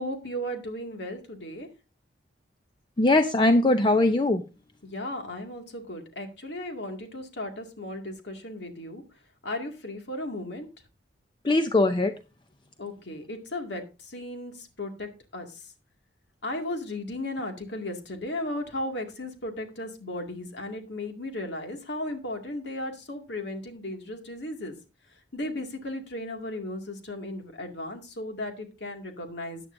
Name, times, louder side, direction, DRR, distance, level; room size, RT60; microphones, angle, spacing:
voice 1, 0.0-1.7 4.8-9.0 9.4-10.7 12.8-15.6 16.4-24.8 25.3-29.6, left 1 dB, 65° left, 4 dB, 2.2 m, -35 dB
voice 2, 3.0-4.4 11.4-12.1, left 2 dB, 25° left, 8 dB, 0.6 m, -21 dB
14.0 x 9.2 x 2.6 m, 0.29 s
head